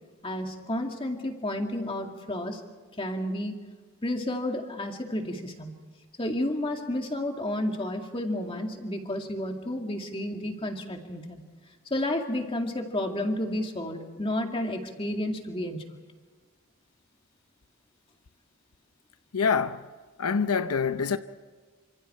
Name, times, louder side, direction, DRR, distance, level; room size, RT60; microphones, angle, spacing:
voice 1, 0.2-2.6 3.0-3.5 4.0-5.8 6.2-11.4 11.9-15.8, left 1 dB, 25° left, 2.2 m, -31 dB
voice 2, 19.3-19.8 20.2-21.2, left 6 dB, 80° left, 0.7 m, -25 dB
28.5 x 26.5 x 4.5 m
head